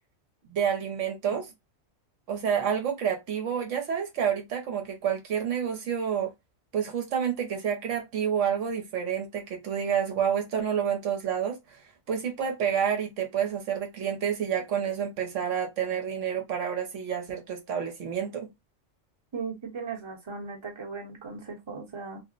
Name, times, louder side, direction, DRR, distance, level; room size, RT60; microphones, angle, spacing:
voice 1, 0.5-1.5 2.3-6.3 6.7-11.8 12.1-18.5, right 8 dB, 70° right, 1.0 m, -29 dB
voice 2, 19.3-22.2, right 5 dB, 25° right, 0.9 m, -37 dB
2.5 x 2.0 x 3.7 m
omnidirectional pair, 1.3 m